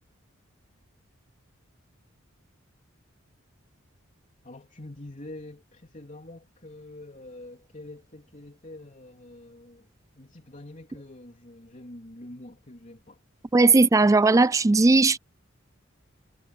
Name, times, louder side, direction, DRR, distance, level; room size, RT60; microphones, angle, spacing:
voice 1, 4.4-9.9 10.2-13.2, left 1 dB, 40° left, 3.4 m, -45 dB
voice 2, 13.5-15.2, right 3 dB, 15° right, 0.3 m, -18 dB
head